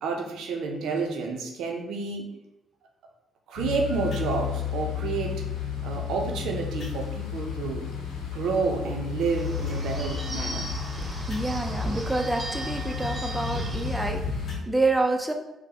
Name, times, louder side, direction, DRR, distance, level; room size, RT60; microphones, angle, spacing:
voice 1, 0.0-2.3 3.5-5.4 5.8-7.8 8.2-10.7, right 4 dB, 80° right, 2 dB, 0.5 m, -30 dB
sound 1, 3.6-14.6, left 8 dB, 85° left, 0.6 m, -33 dB
sound 2, 4.1-14.5, equal, 60° left, 0.8 m, -39 dB
Bird / Bell, 9.2-14.2, right 1 dB, 30° right, 0.8 m, -39 dB
voice 2, 11.3-15.3, right 2 dB, 10° right, 3 dB, 0.4 m, -28 dB
3.8 x 2.1 x 2.8 m, 0.90 s
supercardioid pair, 60°, 0 cm